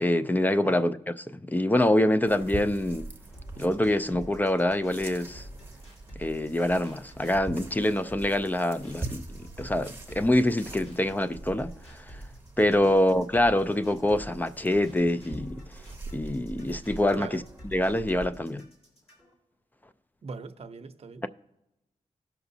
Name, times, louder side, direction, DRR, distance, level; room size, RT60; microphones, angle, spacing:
voice 1, 0.0-3.1 3.6-5.5 6.2-12.2 12.6-15.8 16.1-17.4 17.7-18.7, left 1 dB, 15° left, 0.3 m, -25 dB
sound 1, 2.3-18.3, right 3 dB, 15° right, 0.8 m, -43 dB
sound 2, 3.3-19.3, equal, 50° left, 3.4 m, -48 dB
voice 2, 20.2-21.2, right 4 dB, 50° right, 0.7 m, -41 dB
18.0 x 6.0 x 2.7 m
wide cardioid pair, 130°, 13 cm